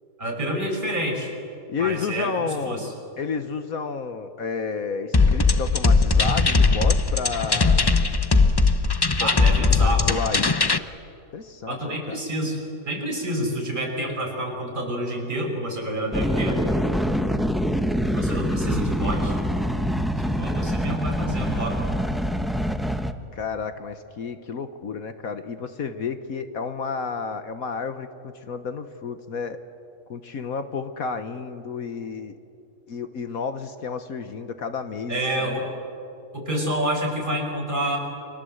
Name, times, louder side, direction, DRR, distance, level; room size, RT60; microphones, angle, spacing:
voice 1, 0.2-1.3 1.8-2.9 9.2-10.1 11.7-16.6 18.1-19.4 20.2-21.8 35.1-35.6 36.3-38.0, right 1 dB, 30° right, 0 dB, 6.2 m, -28 dB
voice 2, 1.7-8.0 9.2-9.3 9.6-10.8 11.3-12.2 23.3-29.6 30.1-32.4 32.9-35.6, left 5 dB, 60° left, 9 dB, 1.5 m, -31 dB
sound 1, 5.1-10.8, left 4 dB, 35° left, 0.4 m, -19 dB
sound 2, 16.1-23.1, equal, ahead, 0.7 m, -25 dB
30.0 x 25.0 x 8.0 m, 2.7 s
omnidirectional pair, 1.7 m